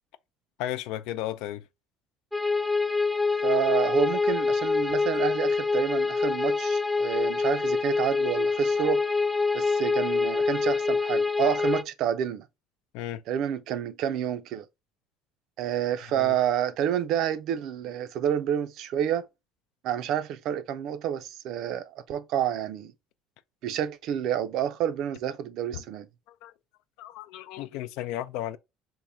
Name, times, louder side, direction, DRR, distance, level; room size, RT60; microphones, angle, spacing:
voice 1, 0.6-1.6 12.9-13.2 16.2-16.3 25.7-25.8 26.4-26.5 27.0-28.6, left 13 dB, 80° left, 0.3 m, -34 dB
sound 1, 2.3-11.8, left 4 dB, ahead, 0.3 m, -25 dB
voice 2, 3.4-9.0 9.5-12.5 13.3-14.7 15.6-19.3 19.8-22.9 23.6-26.1, right 10 dB, 65° right, 0.4 m, -29 dB
3.6 x 2.1 x 4.1 m
supercardioid pair, 105°, 0 cm